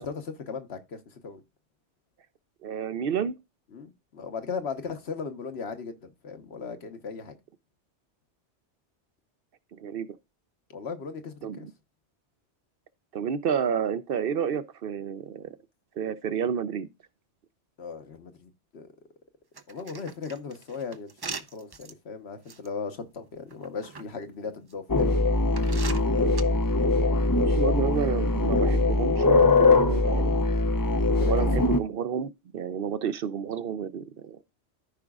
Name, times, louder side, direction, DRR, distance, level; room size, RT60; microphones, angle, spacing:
voice 1, 0.0-1.4 3.7-7.4 10.7-11.7 17.8-18.9 19.7-25.2 31.2-31.5, left 5 dB, 70° left, 1.3 m, -37 dB
voice 2, 2.6-3.3 9.8-10.1 11.4-11.6 13.1-15.5 16.0-16.9 27.3-30.3 31.3-34.4, right 7 dB, 60° right, 0.7 m, -30 dB
sound 1, 19.6-21.9 22.5-22.7 23.5-24.0 24.7-24.8 25.6-26.4, right 4 dB, 35° right, 0.4 m, -39 dB
sound 2, 24.9-31.8, left 3 dB, 30° left, 0.4 m, -22 dB
14.0 x 5.0 x 2.3 m
omnidirectional pair, 1.1 m